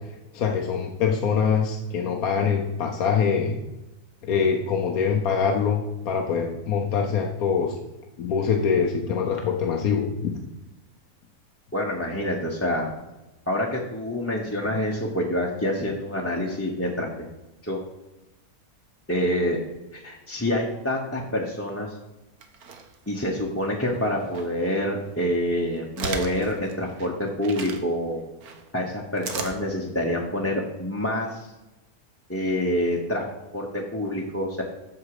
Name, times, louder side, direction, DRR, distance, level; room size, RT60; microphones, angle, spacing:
voice 1, 0.1-3.6 4.2-7.7 8.2-10.4, left 6 dB, 75° left, 2 dB, 1.3 m, -24 dB
voice 2, 11.7-12.9 13.5-17.1 17.6-17.8 19.1-19.6 19.9-21.9 23.1-28.2 28.7-31.5 32.3-33.2 33.5-34.6, left 1 dB, 10° left, -2 dB, 0.9 m, -27 dB
sound 1, 22.4-23.3 23.9-24.5 25.0-27.8 28.4-29.5, right 5 dB, 80° right, 1.6 m, -36 dB
14.0 x 4.8 x 4.9 m, 0.99 s
omnidirectional pair, 1.6 m